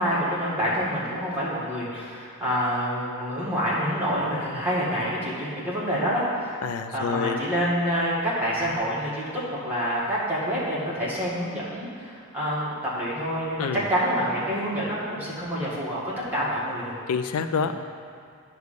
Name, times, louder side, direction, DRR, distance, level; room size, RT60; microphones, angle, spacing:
voice 1, 0.0-6.6 6.9-16.0 16.3-17.0 17.5-17.7, equal, 10° right, -9 dB, 1.8 m, -27 dB
voice 2, 6.6-7.4 13.6-13.9 17.1-17.7, left 6 dB, 90° left, 9 dB, 0.4 m, -27 dB
9.5 x 3.3 x 6.6 m, 2.3 s
head